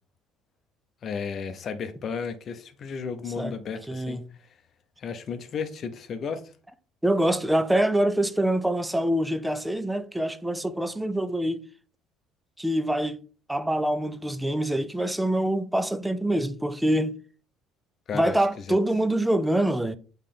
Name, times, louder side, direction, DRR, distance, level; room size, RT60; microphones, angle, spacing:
voice 1, 1.0-4.2 5.0-6.5 18.1-18.4 18.7-18.8, left 6 dB, 35° left, 0.7 m, -33 dB
voice 2, 3.9-4.2 7.0-11.6 12.6-13.2 13.5-17.2 18.1-20.0, right 1 dB, 5° right, 0.4 m, -25 dB
8.5 x 3.2 x 3.7 m
cardioid pair, 160°, 0 cm